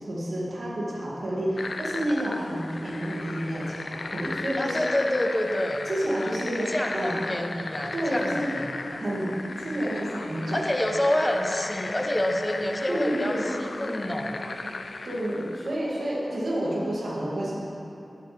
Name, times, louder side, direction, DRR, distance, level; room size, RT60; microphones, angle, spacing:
voice 1, 0.1-4.9 5.9-6.7 6.9-7.1 7.9-8.5 9.0-10.6 12.9-13.4 15.0-17.5, right 1 dB, 75° right, -6 dB, 2.6 m, -29 dB
sound 1, 1.6-15.8, left 3 dB, 70° left, 0.5 m, -36 dB
voice 2, 4.6-5.9 6.7-9.0 10.5-14.4, left 1 dB, 25° left, 2 dB, 1.1 m, -28 dB
11.5 x 11.0 x 3.5 m, 2.8 s
cardioid pair, 45°, 0 cm